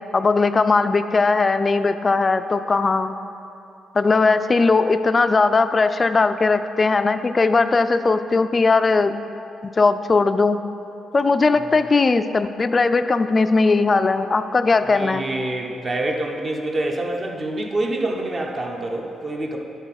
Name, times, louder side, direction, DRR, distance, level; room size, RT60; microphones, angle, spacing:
voice 1, 0.1-3.2 3.9-9.2 9.6-10.6 11.1-15.3, left 3 dB, 30° left, 10 dB, 0.3 m, -19 dB
voice 2, 14.9-19.6, right 2 dB, 30° right, 1 dB, 0.9 m, -26 dB
10.5 x 4.1 x 5.8 m, 2.7 s
cardioid pair, 115°, 0 cm